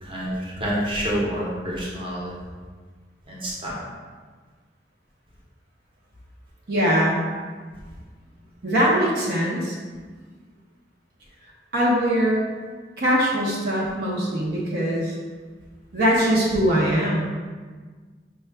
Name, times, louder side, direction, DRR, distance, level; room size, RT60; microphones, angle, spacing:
voice 1, 0.0-2.3 3.3-3.8, equal, 30° right, -5 dB, 0.9 m, -28 dB
voice 2, 6.7-7.2 8.6-9.7 11.7-12.4 13.0-15.1 15.9-17.2, equal, 60° right, -4 dB, 0.7 m, -21 dB
5.5 x 2.3 x 3.3 m, 1.5 s
head